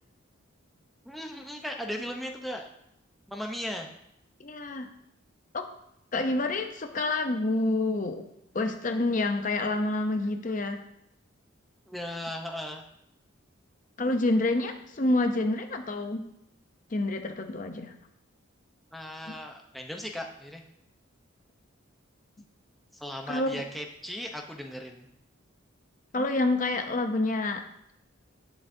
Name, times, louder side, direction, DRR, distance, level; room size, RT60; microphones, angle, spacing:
voice 1, 1.1-2.7 3.3-3.9 11.9-12.8 18.9-20.6 22.9-25.1, equal, ahead, 1 dB, 0.7 m, -37 dB
voice 2, 4.4-4.9 5.5-5.7 6.1-8.3 8.5-10.8 14.0-16.2 16.9-17.9 23.3-23.6 26.1-27.6, left 2 dB, 40° left, 6 dB, 0.6 m, -28 dB
10.5 x 9.1 x 2.7 m, 0.78 s
head